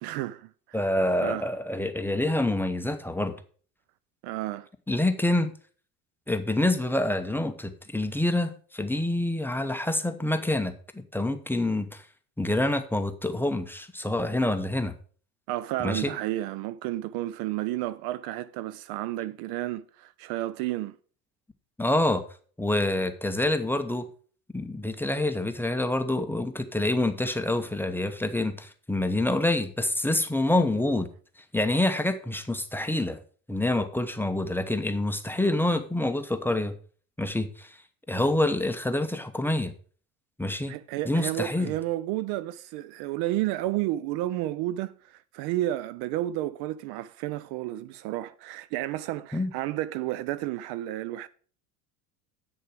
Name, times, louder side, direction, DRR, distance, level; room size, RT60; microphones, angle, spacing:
voice 1, 0.0-0.9 1.2-1.5 4.2-4.7 15.5-21.0 40.7-51.3, right 15 dB, 55° right, 0.5 m, -31 dB
voice 2, 0.7-3.3 4.9-5.5 6.3-12.0 12.4-14.9 15.8-16.1 21.8-22.2 22.6-24.1 24.5-31.1 31.5-33.2 33.5-36.7 37.2-37.8 38.1-39.7 40.4-40.8 41.1-41.7 49.3-49.5, left 1 dB, 5° left, 0.8 m, -27 dB
9.0 x 6.6 x 4.9 m
hypercardioid pair, 80°, 48 cm